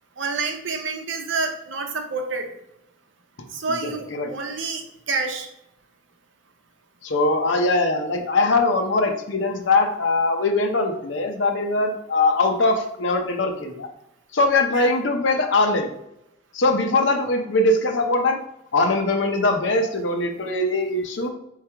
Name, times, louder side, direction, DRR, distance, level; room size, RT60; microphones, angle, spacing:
voice 1, 0.2-2.5 3.5-5.5 14.7-14.9, right 4 dB, 75° right, 4 dB, 0.7 m, -28 dB
voice 2, 3.7-4.3 7.0-13.9 14.3-15.9 16.5-18.4 18.7-21.3, left 2 dB, 70° left, 4 dB, 0.7 m, -21 dB
4.6 x 3.3 x 3.3 m, 0.81 s
head